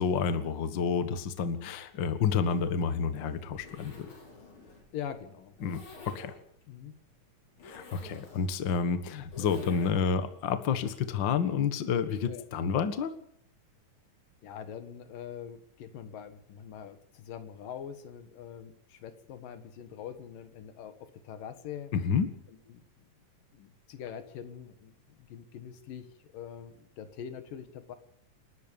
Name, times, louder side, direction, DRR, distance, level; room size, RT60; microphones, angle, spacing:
voice 1, 0.0-4.1 5.6-6.3 7.6-13.1 21.9-22.3, left 6 dB, 45° left, 10 dB, 1.7 m, -29 dB
Zipper (clothing), 2.4-10.3, left 3 dB, 60° left, 6.7 m, -51 dB
voice 2, 4.9-5.6 6.7-7.0 12.3-12.4 14.4-21.9 22.7-23.1 23.5-26.1 26.3-28.0, left 8 dB, 85° left, 10 dB, 3.3 m, -43 dB
29.0 x 13.0 x 7.0 m, 0.66 s
omnidirectional pair, 3.8 m